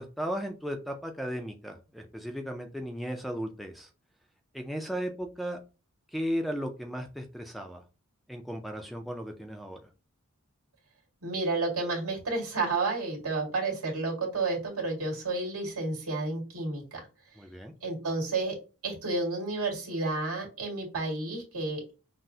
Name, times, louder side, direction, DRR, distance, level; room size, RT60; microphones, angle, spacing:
voice 1, 0.0-3.9 4.5-5.6 6.1-7.8 8.3-9.8 17.4-17.7, equal, ahead, 2 dB, 0.3 m, -35 dB
voice 2, 11.2-17.1 17.8-18.6 18.8-21.9, right 3 dB, 80° right, -1 dB, 2.0 m, -31 dB
6.1 x 2.0 x 2.7 m, 0.31 s
head